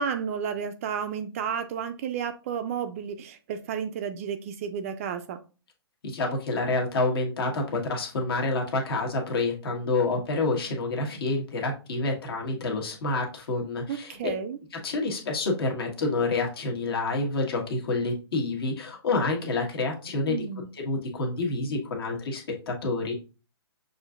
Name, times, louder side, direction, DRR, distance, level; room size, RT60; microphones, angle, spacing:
voice 1, 0.0-5.4 13.9-14.6 20.3-20.7, right 7 dB, 30° right, 8 dB, 0.3 m, -32 dB
voice 2, 6.0-14.3 14.7-20.4 20.7-23.1, left 3 dB, 60° left, 1 dB, 1.4 m, -28 dB
6.3 x 2.6 x 2.4 m, 0.34 s
hypercardioid pair, 155°, 14 cm